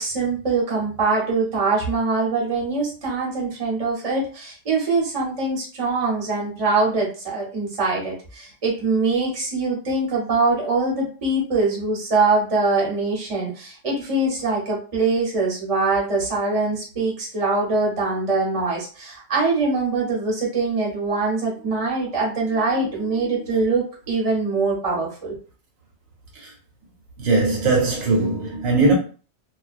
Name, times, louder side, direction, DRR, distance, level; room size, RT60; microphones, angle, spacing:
voice 1, 0.0-25.4, right 3 dB, 30° right, 0.8 m, -23 dB
voice 2, 21.6-23.5 26.3-26.5 27.2-28.9, right 2 dB, 75° right, 1.1 m, -23 dB
2.3 x 2.2 x 2.4 m
omnidirectional pair, 1.5 m